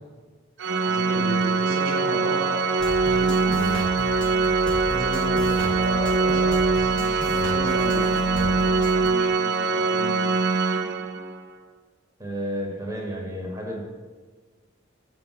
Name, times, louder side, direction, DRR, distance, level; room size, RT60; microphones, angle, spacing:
Organ, 0.6-11.4, right 4 dB, 60° right, 0.4 m, -23 dB
voice 1, 0.9-2.7 3.1-3.9 4.9-10.3, equal, 90° right, -1 dB, 2.2 m, -34 dB
sound 1, 2.8-9.1, equal, 5° left, 0.3 m, -34 dB
voice 2, 12.2-13.8, equal, 15° right, -1 dB, 1.1 m, -31 dB
6.4 x 5.8 x 5.6 m, 1.4 s
head